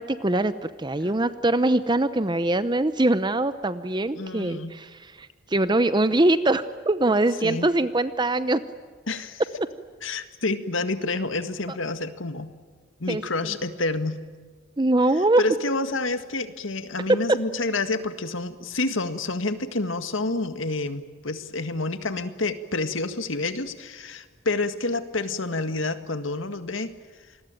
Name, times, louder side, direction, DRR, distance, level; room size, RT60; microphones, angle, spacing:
voice 1, 0.0-8.6 13.1-13.2 14.8-15.4, right 2 dB, 20° right, 13 dB, 0.7 m, -23 dB
voice 2, 4.2-4.7 7.4-7.7 9.1-9.4 10.0-12.5 13.0-14.2 15.4-26.9, left 2 dB, 70° left, 9 dB, 1.9 m, -28 dB
27.5 x 21.0 x 9.1 m, 1.5 s
head